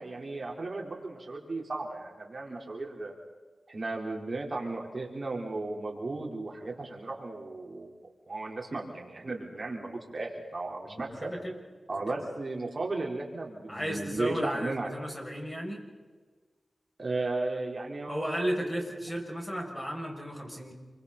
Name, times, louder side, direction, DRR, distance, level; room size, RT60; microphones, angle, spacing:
voice 1, 0.0-3.1 3.7-7.9 8.3-11.3 11.9-14.9 17.0-18.7, right 2 dB, 50° right, 0 dB, 4.1 m, -35 dB
voice 2, 10.9-11.6 12.1-12.2 13.7-15.8 18.1-20.7, equal, 15° left, 0 dB, 7.0 m, -34 dB
28.0 x 25.0 x 4.3 m, 1.4 s
cardioid pair, 50°, 0 cm